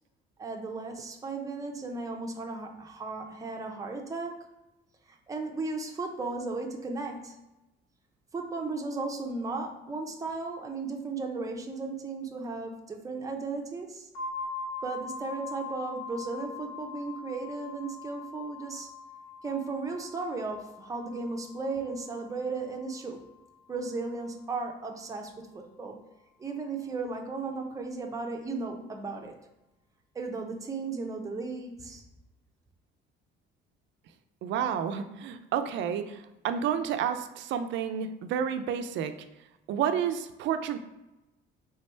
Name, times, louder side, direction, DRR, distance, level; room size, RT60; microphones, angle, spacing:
voice 1, 0.4-4.5 5.1-7.4 8.3-14.1 14.8-18.9 19.4-23.2 23.7-26.0 26.4-29.4 30.1-32.0, right 3 dB, 15° right, 2 dB, 0.5 m, -35 dB
sound 1, 14.1-23.8, left 3 dB, 75° left, 0.9 m, -42 dB
voice 2, 34.4-39.1 39.7-40.8, right 8 dB, 65° right, 9 dB, 0.4 m, -30 dB
3.4 x 3.2 x 4.4 m, 1.0 s
cardioid pair, 145°, 21 cm